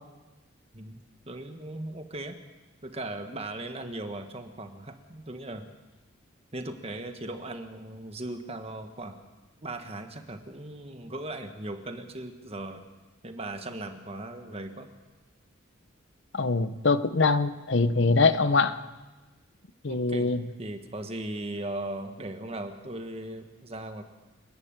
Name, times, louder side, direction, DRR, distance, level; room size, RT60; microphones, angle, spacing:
voice 1, 0.7-2.4 2.8-5.7 6.5-9.2 9.6-12.8 13.2-14.9 19.9-20.3 20.6-24.0, right 1 dB, 30° right, 6 dB, 1.5 m, -38 dB
voice 2, 16.3-18.8 19.8-20.4, left 3 dB, 60° left, 12 dB, 0.9 m, -23 dB
29.0 x 11.0 x 8.9 m, 1.2 s
head